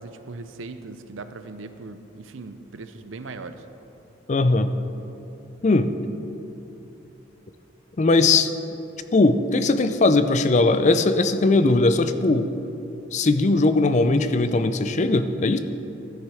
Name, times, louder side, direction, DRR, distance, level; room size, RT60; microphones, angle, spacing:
voice 1, 0.0-3.6, right 3 dB, 75° right, 10 dB, 0.6 m, -39 dB
voice 2, 4.3-4.7 5.6-5.9 8.0-8.5 9.1-12.5 13.1-15.6, left 2 dB, 35° left, 10 dB, 0.4 m, -19 dB
12.5 x 7.4 x 4.8 m, 2.9 s
head